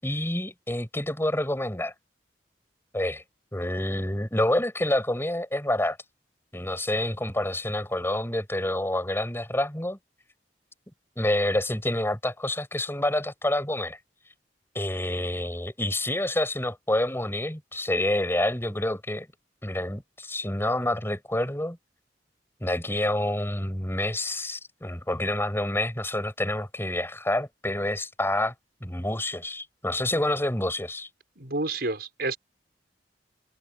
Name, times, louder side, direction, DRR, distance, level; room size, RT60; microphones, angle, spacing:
voice 1, 0.0-1.9 2.9-3.2 3.5-6.0 6.5-10.0 11.2-14.0 14.7-19.3 19.6-21.8 22.6-28.5 28.8-31.1, left 1 dB, 15° left, 6.0 m, -28 dB
voice 2, 31.4-32.4, right 2 dB, 60° right, 6.2 m, -29 dB
head